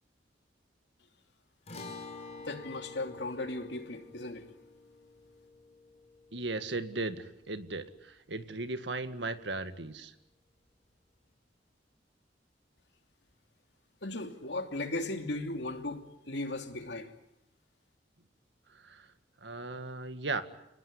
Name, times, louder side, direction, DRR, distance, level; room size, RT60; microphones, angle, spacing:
sound 1, 1.7-8.2, left 3 dB, 35° left, 5.1 m, -49 dB
voice 1, 2.4-4.5 14.0-17.1, left 2 dB, 70° left, 2.9 m, -37 dB
voice 2, 6.3-10.1 18.7-19.1 19.4-20.4, right 3 dB, 75° right, 2.0 m, -37 dB
29.5 x 19.5 x 10.0 m
head